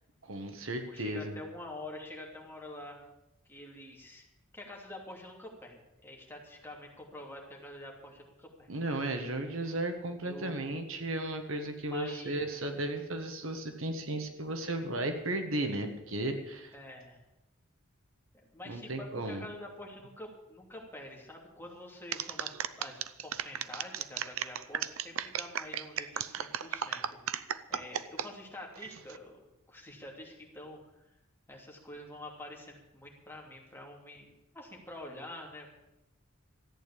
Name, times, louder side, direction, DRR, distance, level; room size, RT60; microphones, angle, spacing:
voice 1, 0.2-1.3 8.7-16.7 18.7-19.5, right 1 dB, 70° right, 6 dB, 1.6 m, -35 dB
voice 2, 0.8-3.1 3.5-4.3 4.5-9.0 10.2-10.7 11.9-12.4 16.7-17.2 18.5-29.4 29.7-31.1 31.5-35.7, left 1 dB, 10° left, -1 dB, 2.9 m, -47 dB
sound 1, 22.1-28.3 28.8-29.2, right 9 dB, 90° right, 0.7 m, -35 dB
14.5 x 9.0 x 8.4 m, 0.89 s
head